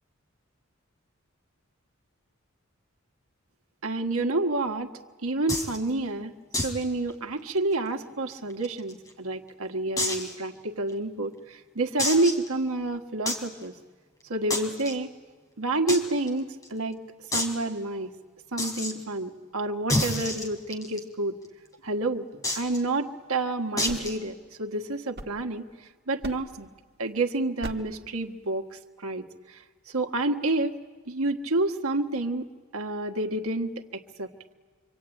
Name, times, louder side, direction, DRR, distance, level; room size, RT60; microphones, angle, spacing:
voice 1, 3.8-4.9 5.2-6.4 6.6-13.7 14.3-15.1 15.6-17.0 17.3-18.1 18.5-21.4 21.8-25.7 26.1-26.7 27.0-30.8 31.1-32.5 32.7-34.3, right 2 dB, 90° right, 4 dB, 1.6 m, -29 dB
sound 1, 5.5-5.8 6.5-6.8 7.1-7.2 7.6-7.7 8.3-9.1 10.0-10.3 10.9-11.0 12.0-12.5 13.3-13.5 14.5-14.9 15.9-16.0 16.3-16.4 16.6-16.7 17.3-17.5 18.6-18.9 19.9-21.0 22.4-22.8 23.8-24.2, left 1 dB, 15° left, 3.5 m, -28 dB
sound 2, 23.9-25.8 26.2-26.7 27.6-28.1, right 1 dB, 50° right, 1.5 m, -41 dB
26.0 x 25.0 x 9.1 m, 1.5 s
head